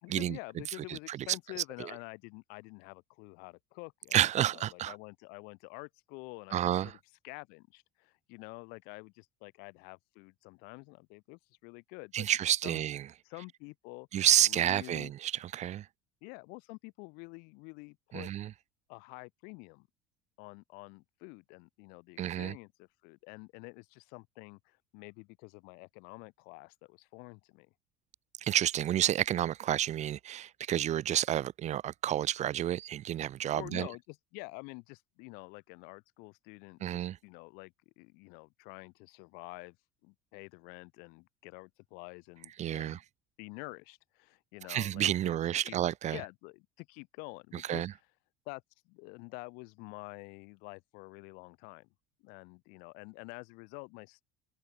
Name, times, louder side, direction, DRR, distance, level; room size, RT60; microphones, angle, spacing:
voice 1, 0.0-4.2 4.5-7.0 7.2-12.3 12.6-12.8 13.2-14.1 14.4-15.1 16.2-18.3 18.9-19.9 20.4-27.7 33.5-39.8 40.0-43.0 43.4-45.8 46.1-48.0 48.5-51.9 52.2-54.2, left 30 dB, 70° left, 5.0 m, -48 dB
voice 2, 4.1-4.9 6.5-6.9 12.1-13.0 14.1-15.9 18.1-18.5 22.2-22.5 28.4-33.9 36.8-37.2 42.6-43.0 44.7-46.2 47.7-47.9, right 11 dB, 45° right, 0.8 m, -30 dB
hypercardioid pair, 70°, 16 cm